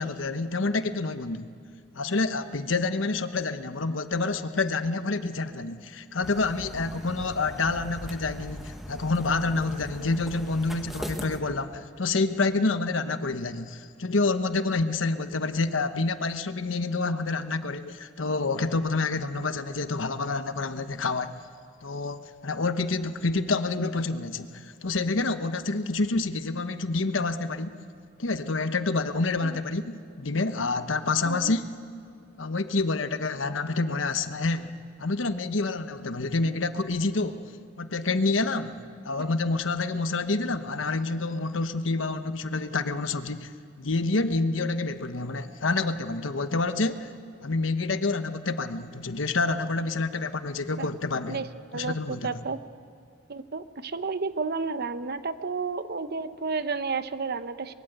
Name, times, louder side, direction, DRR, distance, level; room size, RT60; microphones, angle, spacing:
voice 1, 0.0-1.5 1.9-21.3 21.8-27.8 28.2-31.6 32.4-37.5 37.8-43.5 43.8-47.1 47.4-51.4 51.7-52.4, left 3 dB, 85° left, 10 dB, 1.1 m, -28 dB
sound 1, 6.2-11.4, equal, ahead, 1.6 m, -40 dB
voice 2, 51.3-52.6 53.3-57.7, right 4 dB, 55° right, 12 dB, 0.9 m, -32 dB
24.0 x 22.0 x 8.1 m, 2.3 s
head